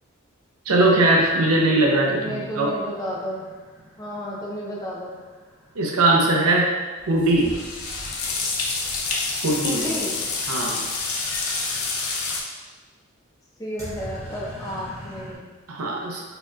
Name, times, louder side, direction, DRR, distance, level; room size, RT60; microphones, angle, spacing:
sound 1, 0.7-6.4 13.8-15.3, equal, 15° right, 0.8 m, -43 dB
voice 1, 0.7-2.7 5.8-6.7 7.1-7.5 9.4-9.8 10.5-10.8 15.7-16.2, right 2 dB, 80° right, -1 dB, 0.6 m, -20 dB
voice 2, 2.0-3.5 4.0-5.1 9.6-10.1 13.6-15.4, equal, 15° left, -5 dB, 0.5 m, -32 dB
sound 2, 7.0-12.4, left 3 dB, 85° left, 0.6 m, -28 dB
4.3 x 2.8 x 2.3 m, 1.3 s
head